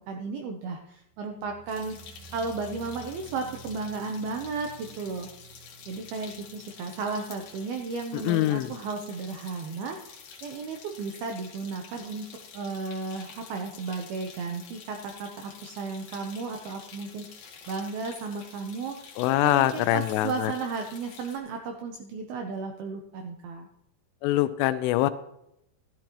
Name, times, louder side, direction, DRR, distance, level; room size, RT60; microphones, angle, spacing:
voice 1, 0.1-2.0 2.3-5.3 5.9-12.3 12.5-19.1 19.4-23.7, right 4 dB, 90° right, 3 dB, 2.1 m, -34 dB
sound 1, 1.1-8.2 8.5-9.0 9.3-9.4, right 4 dB, 60° right, 2.9 m, -51 dB
sound 2, 1.7-21.4, left 6 dB, 60° left, 2.7 m, -49 dB
voice 2, 8.1-8.7 19.2-20.5 24.2-25.1, left 15 dB, 85° left, 12 dB, 3.1 m, -24 dB
14.0 x 13.0 x 3.0 m, 0.79 s
omnidirectional pair, 5.7 m